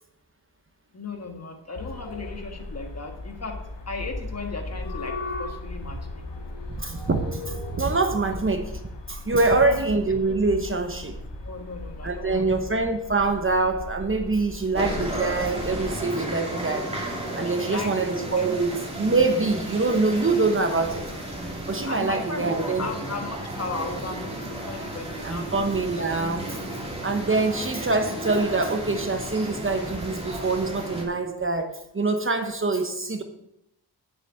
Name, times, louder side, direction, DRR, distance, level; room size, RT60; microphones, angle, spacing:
voice 1, 0.9-3.6 3.9-6.2 8.1-8.2 9.5-9.8 11.4-12.6 17.4-17.9 18.3-18.4 21.8-25.5 27.3-27.4, left 3 dB, 35° left, 4 dB, 1.6 m, -36 dB
sound 1, 1.7-16.0, left 2 dB, 75° left, 2.1 m, -37 dB
voice 2, 6.7-8.7 9.1-11.2 12.0-16.9 17.4-21.0 21.7-22.9 25.2-26.6 27.0-33.2, right 3 dB, 30° right, 6 dB, 0.9 m, -25 dB
sound 2, 14.7-31.0, right 1 dB, 15° right, 2.4 m, -33 dB
7.3 x 7.0 x 7.5 m, 0.84 s
wide cardioid pair, 130°, 43 cm